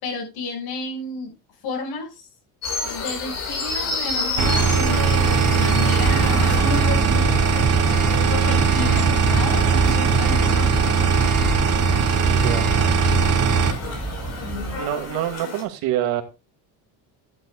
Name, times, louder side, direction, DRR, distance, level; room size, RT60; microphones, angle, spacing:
voice 1, 0.0-1.3 1.6-2.3 2.8-7.0 8.5-10.8 14.4-14.9, left 4 dB, 80° left, 2 dB, 6.3 m, -32 dB
sound 1, 2.6-15.6, left 3 dB, 45° left, 4.5 m, -31 dB
sound 2, 4.4-13.7, right 5 dB, 45° right, 3.1 m, -19 dB
sound 3, 6.0-14.8, right 3 dB, 10° right, 6.5 m, -29 dB
voice 2, 12.3-12.6 14.8-16.2, right 12 dB, 85° right, 5 dB, 2.6 m, -25 dB
13.0 x 11.0 x 2.4 m, 0.27 s
cardioid pair, 170°, 36 cm